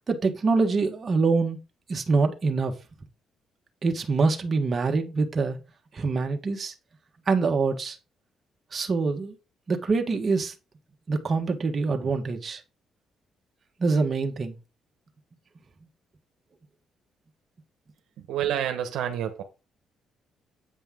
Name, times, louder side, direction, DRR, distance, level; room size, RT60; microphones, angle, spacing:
voice 1, 0.1-1.6 1.9-2.7 3.8-5.6 5.9-6.7 7.3-8.0 8.7-9.3 9.7-10.5 11.1-12.6 13.8-14.5, right 4 dB, 40° right, 1.4 m, -25 dB
voice 2, 18.2-19.4, right 10 dB, 85° right, 1.1 m, -28 dB
8.6 x 5.3 x 3.7 m
cardioid pair, 90°, 0 cm